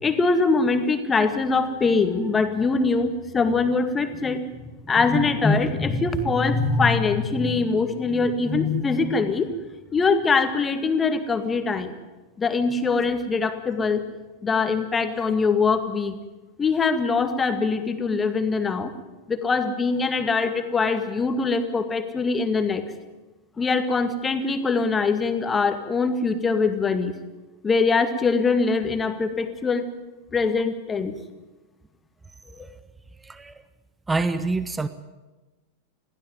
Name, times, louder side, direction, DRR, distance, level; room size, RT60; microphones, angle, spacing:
voice 1, 0.0-9.5 9.9-11.9 12.4-14.0 14.4-16.2 16.6-18.9 19.3-22.8 23.6-27.1 27.6-29.9 30.3-31.2 32.6-32.7, left 4 dB, 15° left, 8 dB, 2.0 m, -23 dB
voice 2, 33.2-33.6 34.1-34.9, right 3 dB, 10° right, 14 dB, 0.8 m, -26 dB
21.5 x 15.5 x 9.5 m, 1.2 s
figure-of-eight pair, 90°, 0 cm